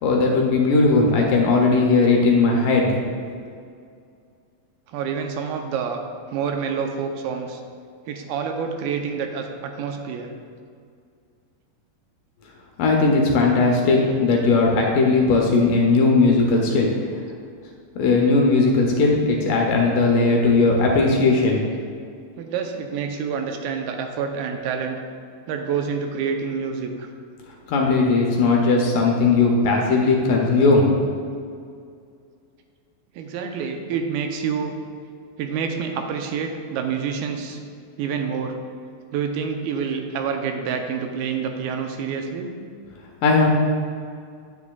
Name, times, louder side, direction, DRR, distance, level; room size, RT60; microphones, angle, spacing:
voice 1, 0.0-3.0 12.8-16.9 18.0-21.6 27.7-31.0 43.2-43.5, left 3 dB, 75° left, 0 dB, 2.1 m, -18 dB
voice 2, 4.9-6.0 6.3-7.6 8.1-10.3 22.4-25.0 25.5-27.1 33.2-34.8 35.4-37.6 38.0-38.6 39.1-42.5, right 6 dB, 85° right, 4 dB, 2.5 m, -27 dB
9.5 x 9.5 x 2.3 m, 2.3 s
omnidirectional pair, 4.3 m